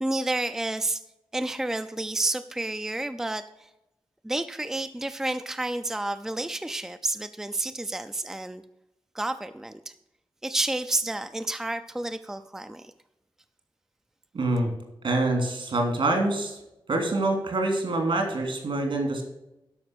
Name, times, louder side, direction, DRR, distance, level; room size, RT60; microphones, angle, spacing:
voice 1, 0.0-1.0 1.3-3.7 4.2-8.6 9.1-9.9 10.4-12.9, right 2 dB, 5° right, 9 dB, 0.4 m, -30 dB
voice 2, 14.3-14.7 15.0-16.6 16.9-19.2, right 2 dB, 75° right, 3 dB, 3.2 m, -25 dB
12.5 x 5.8 x 6.2 m, 0.89 s
wide cardioid pair, 140°, 9 cm